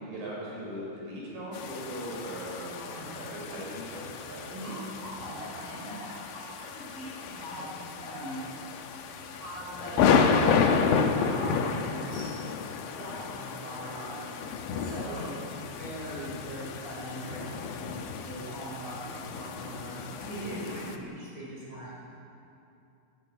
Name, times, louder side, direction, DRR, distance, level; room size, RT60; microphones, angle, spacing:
voice 1, 0.0-2.7 3.0-3.1 3.4-4.7 15.0-15.3, equal, 60° right, -5 dB, 8.0 m, -39 dB
sound 1, 1.5-21.0, left 6 dB, 80° left, 2.0 m, -31 dB
voice 2, 2.8-3.3 4.5-8.6 9.2-10.1 10.5-12.3 12.9-14.3 14.8-21.9, right 1 dB, 45° right, -6 dB, 6.9 m, -41 dB
19.5 x 15.0 x 9.5 m, 2.7 s
omnidirectional pair, 5.8 m